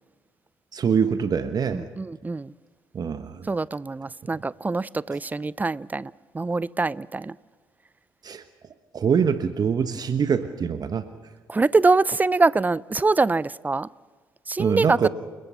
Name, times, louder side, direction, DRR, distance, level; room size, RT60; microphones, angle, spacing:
voice 1, 0.7-1.9 2.9-3.5 8.2-8.4 8.9-11.0 14.6-15.1, right 7 dB, 40° right, 1.2 m, -24 dB
voice 2, 1.7-2.5 3.5-7.4 11.5-13.9 14.5-15.1, right 3 dB, 15° right, 0.6 m, -24 dB
30.0 x 20.5 x 5.7 m
figure-of-eight pair, 50°, 10 cm